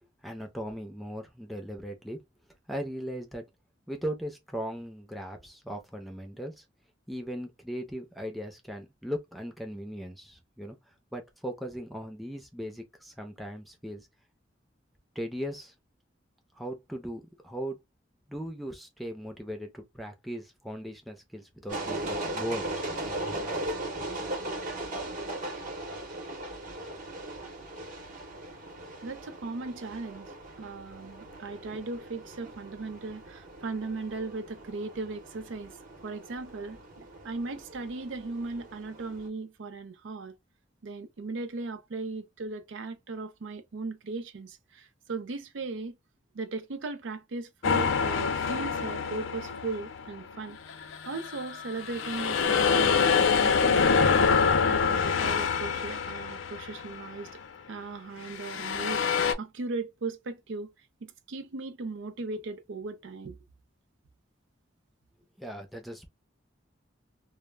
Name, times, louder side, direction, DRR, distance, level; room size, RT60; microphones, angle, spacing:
voice 1, 0.2-2.2 2.7-3.5 3.9-6.6 7.1-10.8 11.1-14.1 15.2-15.7 16.5-17.8 18.3-22.8 65.4-66.1, equal, ahead, 0.6 m, -38 dB
sound 1, 21.7-39.3, right 1 dB, 45° right, 0.8 m, -39 dB
voice 2, 29.0-35.8 36.0-40.4 40.8-46.0 46.3-54.2 54.6-57.3 57.7-60.7 61.0-63.4, right 3 dB, 75° right, 0.5 m, -38 dB
sound 2, 47.6-50.1 50.7-57.1 58.3-59.3, left 5 dB, 85° left, 0.4 m, -26 dB
2.2 x 2.0 x 3.2 m
head